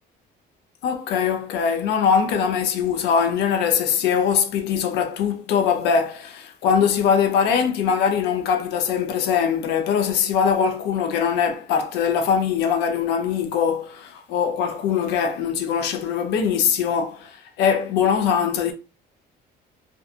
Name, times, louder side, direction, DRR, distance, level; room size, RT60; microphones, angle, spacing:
voice 1, 0.8-18.7, left 7 dB, 85° left, 0.5 m, -22 dB
2.6 x 2.2 x 2.4 m
cardioid pair, 110°, 17 cm